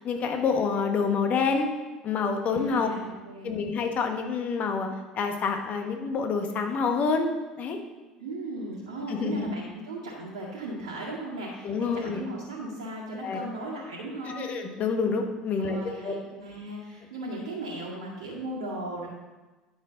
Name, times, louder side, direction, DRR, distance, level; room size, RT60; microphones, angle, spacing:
voice 1, 0.0-1.7 2.0-2.9 3.4-7.3 7.6-7.8 9.1-9.5 11.6-12.2 13.2-13.4 14.2-16.1, left 5 dB, 45° left, 5 dB, 1.4 m, -27 dB
voice 2, 2.5-3.6 8.2-14.5 15.6-19.1, right 1 dB, 80° right, -8 dB, 2.0 m, -37 dB
10.5 x 6.5 x 4.0 m, 1.2 s
hypercardioid pair, 70°, 3 cm